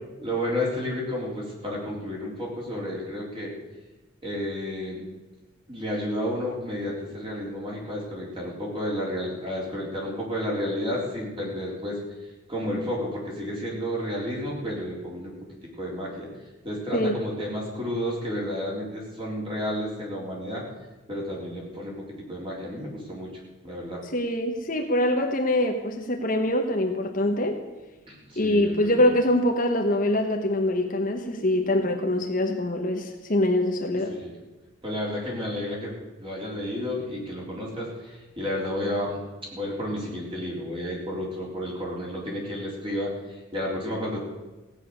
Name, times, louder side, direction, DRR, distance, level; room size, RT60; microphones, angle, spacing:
voice 1, 0.2-3.5 4.2-5.0 5.7-12.0 12.5-15.3 15.8-16.3 16.6-20.6 21.1-21.9 22.3-23.3 23.6-24.0 28.1-29.2 33.9-34.3 34.8-35.9 36.2-39.2 39.5-44.2, left 1 dB, 25° right, -3 dB, 3.9 m, -31 dB
voice 2, 16.9-17.2 24.0-27.6 28.4-34.1, left 1 dB, 40° left, 3 dB, 1.2 m, -24 dB
16.0 x 9.2 x 6.5 m, 1.1 s
head